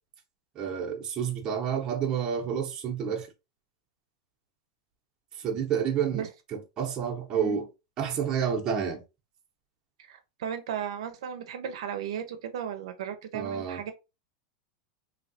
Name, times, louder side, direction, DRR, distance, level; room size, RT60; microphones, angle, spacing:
voice 1, 0.6-3.3 5.4-6.2 6.5-7.7 8.0-9.0 13.3-13.8, right 7 dB, 25° right, 0.8 m, -29 dB
voice 2, 10.1-13.9, right 9 dB, 85° right, 0.5 m, -35 dB
3.1 x 2.7 x 2.7 m
supercardioid pair, 155°, 3 cm